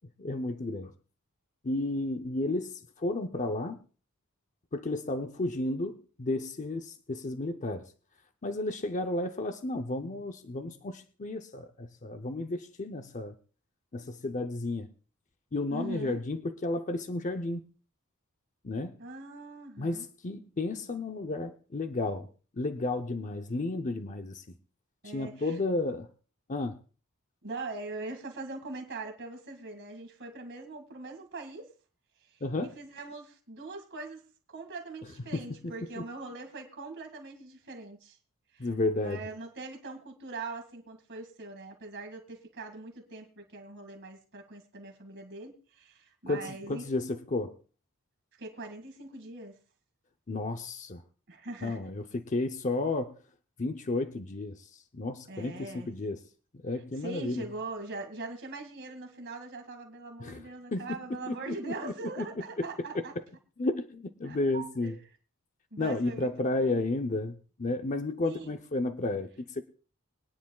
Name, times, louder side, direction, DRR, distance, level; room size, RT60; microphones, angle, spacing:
voice 1, 0.2-0.9 1.6-3.8 4.7-7.9 8.4-13.4 13.9-14.9 15.5-17.6 18.6-18.9 19.8-22.3 22.5-24.4 25.0-26.1 26.5-26.8 32.4-32.7 35.3-36.0 38.6-39.3 46.3-47.6 50.3-51.0 51.6-53.2 53.6-56.2 56.6-57.4 60.2-60.4 60.7-61.0 61.3-62.3 62.6-62.7 62.9-63.2 63.6-65.0 65.8-69.6, left 2 dB, 35° left, 7 dB, 0.7 m, -32 dB
voice 2, 15.7-16.2 19.0-20.1 25.0-25.6 27.4-31.7 32.3-34.2 34.5-38.2 38.5-46.8 48.4-49.6 51.3-51.8 55.3-55.9 57.0-63.1 64.3-64.9 65.7-66.3 66.5-66.7 68.2-68.6, right 3 dB, 55° right, 4 dB, 2.2 m, -42 dB
23.0 x 9.9 x 2.4 m, 0.38 s
head